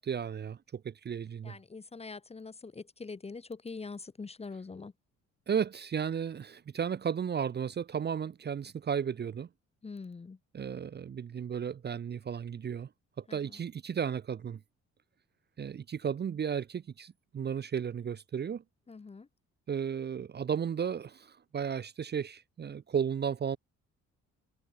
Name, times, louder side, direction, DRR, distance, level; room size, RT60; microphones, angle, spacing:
voice 1, 0.0-1.6 5.5-9.5 10.5-12.9 13.3-14.6 15.6-18.6 19.7-23.6, right 7 dB, 35° right, 0.6 m, -34 dB
voice 2, 1.4-4.9 9.8-10.4 13.3-13.6 18.9-19.3, left 4 dB, 20° left, 0.8 m, -44 dB
cardioid pair, 90°, 30 cm